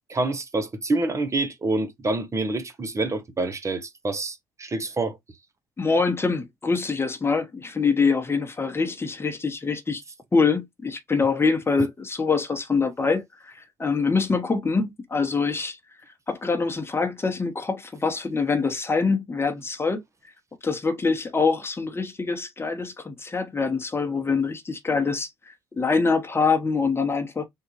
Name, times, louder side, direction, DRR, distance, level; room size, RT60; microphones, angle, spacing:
voice 1, 0.1-5.2, right 2 dB, 30° right, 0.8 m, -27 dB
voice 2, 5.8-10.0 10.3-15.8 16.3-20.0 20.6-25.3 25.8-27.5, left 4 dB, 25° left, 1.1 m, -24 dB
3.7 x 2.5 x 3.1 m
hypercardioid pair, 55°, 10 cm